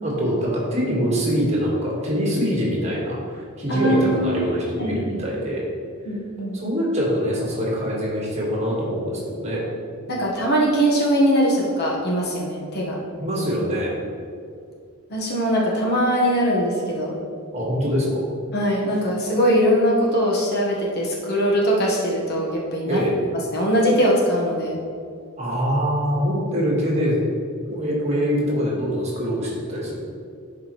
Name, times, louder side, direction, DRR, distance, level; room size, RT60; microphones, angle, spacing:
voice 1, 0.0-5.6 6.5-9.6 13.2-13.9 17.5-18.2 22.9-23.2 25.4-27.2 27.7-29.9, equal, 30° right, -4 dB, 1.6 m, -24 dB
voice 2, 3.7-4.4 4.8-5.2 6.1-6.6 10.1-13.0 15.1-17.2 18.5-23.0 23.5-24.8, equal, 50° left, -3 dB, 1.3 m, -21 dB
11.0 x 5.0 x 3.1 m, 2.3 s
head